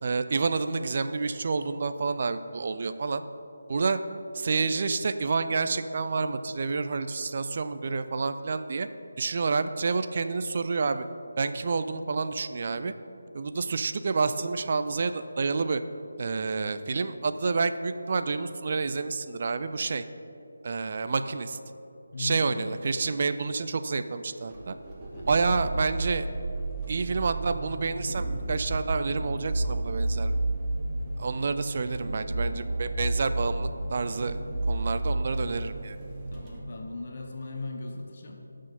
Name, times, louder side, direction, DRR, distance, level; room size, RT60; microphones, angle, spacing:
voice 1, 0.0-3.2 3.7-4.0 4.3-8.9 9.2-11.0 11.4-12.9 13.3-15.8 16.2-20.0 20.6-21.6 22.2-24.8 25.2-26.2 26.9-30.4 31.2-34.4 34.7-36.0, right 4 dB, 40° right, 10 dB, 0.4 m, -29 dB
voice 2, 22.1-22.8 25.1-25.4 36.3-38.4, left 2 dB, 40° left, 2 dB, 1.0 m, -38 dB
sound 1, 24.5-36.6, right 2 dB, 20° right, 1.2 m, -32 dB
18.0 x 6.3 x 4.2 m, 2.9 s
figure-of-eight pair, 155°, 0 cm